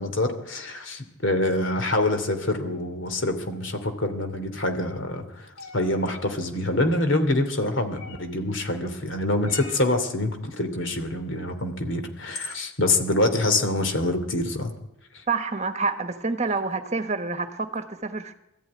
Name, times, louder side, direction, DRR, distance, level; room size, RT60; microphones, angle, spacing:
voice 1, 0.0-14.7, left 2 dB, 60° left, 7 dB, 2.7 m, -26 dB
sound 1, 5.6-5.9 8.0-8.4 9.4-9.9 11.6-11.7 12.3-12.7, left 3 dB, 80° left, 2.9 m, -39 dB
voice 2, 15.3-18.3, right 4 dB, 35° right, 9 dB, 1.3 m, -28 dB
21.0 x 14.0 x 9.7 m, 0.89 s
head